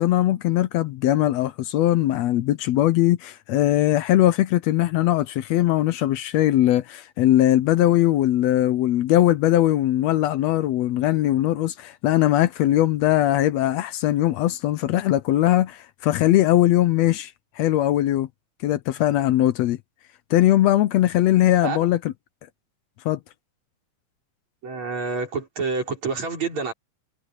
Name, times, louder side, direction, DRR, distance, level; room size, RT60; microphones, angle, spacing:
voice 1, 0.0-18.3 18.6-19.8 20.3-22.0 23.1-23.2, left 14 dB, 75° left, 1.8 m, -20 dB
voice 2, 24.6-26.7, right 4 dB, 70° right, 7.1 m, -28 dB
omnidirectional pair, 3.3 m